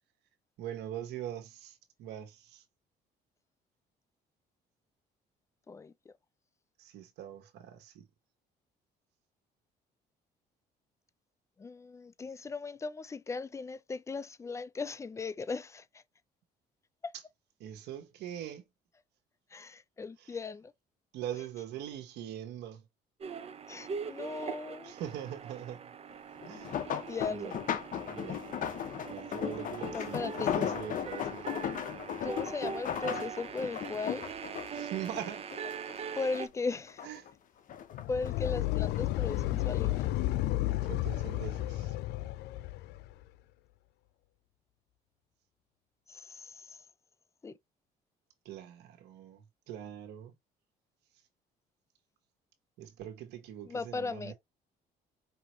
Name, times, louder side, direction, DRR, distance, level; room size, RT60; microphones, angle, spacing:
voice 1, 0.6-2.6 6.8-8.0 17.6-18.6 21.1-22.8 24.8-25.9 26.5-26.8 27.3-27.5 28.1-28.4 29.1-31.5 34.7-35.5 37.0-37.2 40.8-41.9 48.4-50.3 52.8-54.3, right 10 dB, 85° right, 1.4 m, -42 dB
voice 2, 5.7-6.2 11.6-16.0 17.0-17.1 19.5-20.7 23.7-24.9 27.1-27.5 29.9-30.5 32.2-34.2 36.2-37.0 38.1-40.1 46.1-46.9 47.4-47.6 53.6-54.3, left 4 dB, 15° left, 0.4 m, -38 dB
sound 1, 23.2-36.5, right 6 dB, 35° right, 0.7 m, -42 dB
sound 2, 26.4-36.0 36.3-37.3 37.7-39.0 39.8-40.1 40.5-40.6, left 9 dB, 55° left, 0.8 m, -36 dB
sound 3, 37.9-43.1, left 16 dB, 75° left, 0.4 m, -32 dB
5.5 x 2.9 x 3.0 m
cardioid pair, 110°, 17 cm